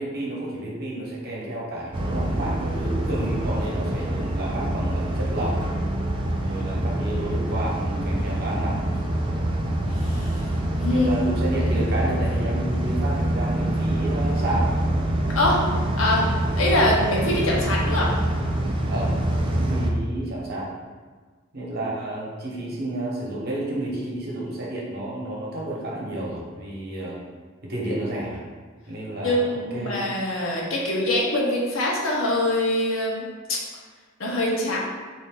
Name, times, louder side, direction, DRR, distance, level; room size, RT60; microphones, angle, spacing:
voice 1, 0.0-5.7 6.4-9.1 10.9-14.7 18.9-19.1 19.5-20.7 21.5-27.2 27.6-28.4 28.9-29.9, right 1 dB, 50° right, -5 dB, 1.0 m, -30 dB
sound 1, 1.9-19.9, right 1 dB, 25° right, 0.4 m, -25 dB
voice 2, 15.3-15.6 16.0-16.2 16.5-18.1 29.2-33.6 34.2-34.8, left 1 dB, 70° left, -3 dB, 0.9 m, -23 dB
3.7 x 2.7 x 3.7 m, 1.4 s
head